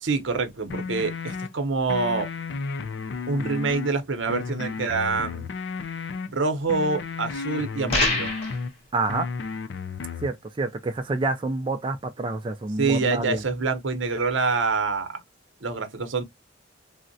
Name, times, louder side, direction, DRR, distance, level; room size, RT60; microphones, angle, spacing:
voice 1, 0.0-2.3 3.3-5.5 6.3-8.3 12.8-15.2 15.6-16.2, right 4 dB, 75° right, 0.7 m, -26 dB
sound 1, 0.7-1.5 1.9-3.9 4.3-6.3 6.7-8.7 9.1-10.3, left 4 dB, 60° left, 0.4 m, -33 dB
sound 2, 7.9-8.6, left 2 dB, 30° left, 0.9 m, -24 dB
voice 2, 8.9-9.3 10.2-13.4, right 3 dB, 25° right, 0.3 m, -28 dB
3.5 x 2.1 x 2.6 m
head